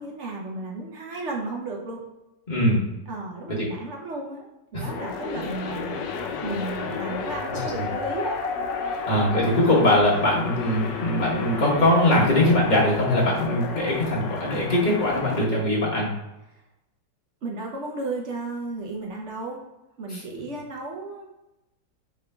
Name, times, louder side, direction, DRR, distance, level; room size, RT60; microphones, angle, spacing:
voice 1, 0.0-2.0 3.1-6.0 6.4-8.4 17.4-19.6 20.0-21.4, right 2 dB, 55° right, -1 dB, 0.8 m, -34 dB
voice 2, 2.5-2.8 3.5-3.7 4.7-4.9 7.5-7.7 9.1-16.1 20.1-20.2, left 1 dB, 30° left, -5 dB, 1.2 m, -21 dB
sound 1, 4.9-15.5, left 5 dB, 80° left, 1.2 m, -32 dB
3.6 x 3.6 x 3.3 m, 0.95 s
omnidirectional pair, 1.9 m